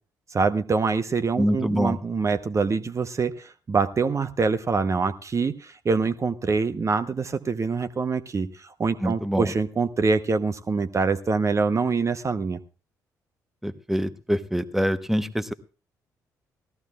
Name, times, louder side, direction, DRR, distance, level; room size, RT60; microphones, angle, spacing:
voice 1, 0.3-12.6, right 4 dB, 35° right, 9 dB, 0.9 m, -25 dB
voice 2, 1.4-2.0 9.0-9.5 13.6-15.5, equal, 5° right, 11 dB, 1.0 m, -25 dB
19.5 x 14.5 x 2.4 m, 0.34 s
figure-of-eight pair, 45°, 9 cm